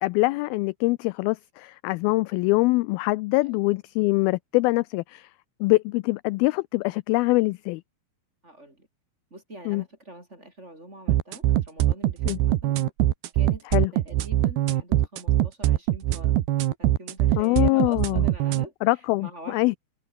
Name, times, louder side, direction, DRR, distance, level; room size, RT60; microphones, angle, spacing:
voice 1, 0.0-5.3 5.6-7.8 9.7-9.8 12.3-12.4 13.7-13.9 17.4-18.2 18.8-19.8, left 22 dB, 85° left, 2.2 m, -24 dB
voice 2, 8.4-8.9 9.3-12.8 13.3-16.4 16.8-18.7 19.2-19.6, right 1 dB, 15° right, 7.2 m, -44 dB
sound 1, 11.1-18.7, right 13 dB, 80° right, 3.3 m, -22 dB
omnidirectional pair, 4.7 m